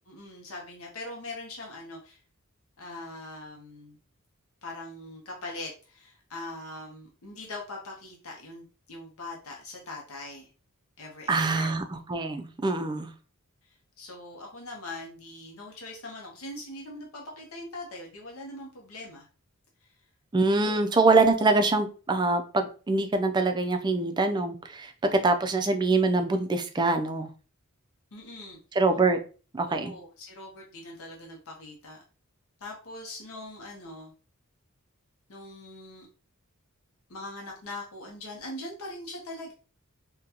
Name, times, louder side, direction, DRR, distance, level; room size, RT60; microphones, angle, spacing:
voice 1, 0.1-2.2 2.8-4.0 4.6-10.5 11.0-11.8 14.0-19.3 19.8-19.9 20.6-20.8 28.1-28.6 29.7-32.0 32.6-34.1 35.3-36.1 37.1-39.5, left 2 dB, 70° left, 0.8 m, -41 dB
voice 2, 11.3-11.8 12.1-13.1 20.3-27.3 28.8-29.2 29.5-29.9, right 3 dB, 20° right, 0.4 m, -24 dB
3.8 x 2.2 x 2.8 m
head